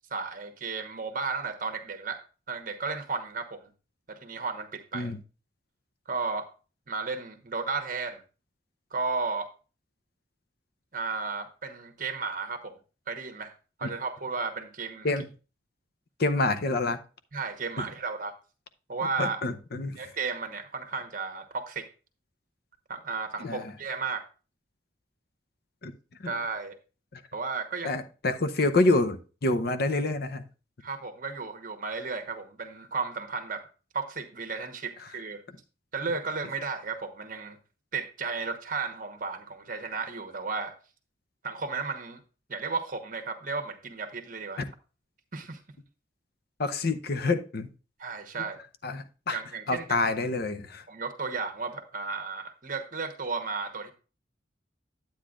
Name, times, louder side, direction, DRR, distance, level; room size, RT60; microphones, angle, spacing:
voice 1, 0.1-3.6 4.1-5.1 6.1-6.5 6.9-8.2 8.9-9.5 10.9-12.7 13.1-13.5 13.8-15.1 17.3-18.4 18.9-19.4 20.0-21.9 22.9-24.2 26.3-26.7 27.3-27.9 30.8-33.7 33.9-35.4 35.9-37.6 37.9-40.8 41.4-42.2 42.5-44.6 45.3-45.6 48.0-48.6 49.3-49.8 50.9-53.9, right 4 dB, 45° right, 7 dB, 1.1 m, -34 dB
voice 2, 16.2-17.0 17.8-17.9 19.2-20.1 23.4-23.7 25.8-25.9 26.2-26.3 27.1-27.2 27.8-30.4 35.0-35.1 44.6-44.7 46.6-47.7 48.8-49.4 49.7-50.8, left 2 dB, 55° left, 11 dB, 0.7 m, -27 dB
10.0 x 8.7 x 2.5 m, 0.34 s
head